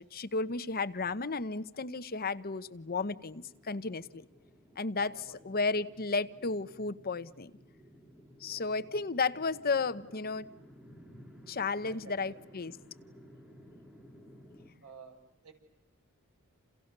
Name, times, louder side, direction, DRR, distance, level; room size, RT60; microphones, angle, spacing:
voice 1, 0.0-4.3 4.8-7.5 8.4-10.5 11.5-12.8, left 4 dB, 45° left, 12 dB, 1.0 m, -33 dB
sound 1, 1.6-14.7, equal, 5° right, 3.8 m, -56 dB
voice 2, 5.1-5.6 8.5-8.8 11.9-12.4 14.8-15.5, right 4 dB, 90° right, 4 dB, 6.5 m, -53 dB
30.0 x 29.0 x 6.8 m, 0.94 s
head